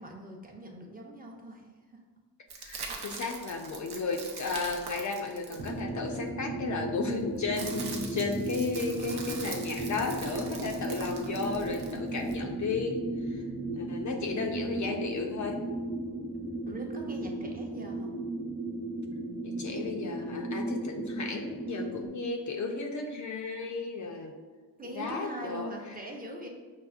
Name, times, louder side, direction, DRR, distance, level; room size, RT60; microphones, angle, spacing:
voice 1, 0.0-2.0 9.1-9.5 13.3-13.7 16.7-18.1 24.8-26.5, equal, 20° right, -1 dB, 0.6 m, -42 dB
sound 1, 2.5-6.2 7.1-12.4, right 4 dB, 70° right, 0.6 m, -42 dB
voice 2, 2.6-13.4 13.7-15.7 19.4-24.4 24.9-25.7, left 4 dB, 45° left, 2 dB, 0.4 m, -34 dB
sound 2, 5.6-22.1, right 2 dB, 40° right, 1.0 m, -35 dB
5.5 x 2.0 x 2.4 m, 1.4 s
cardioid pair, 60°, 42 cm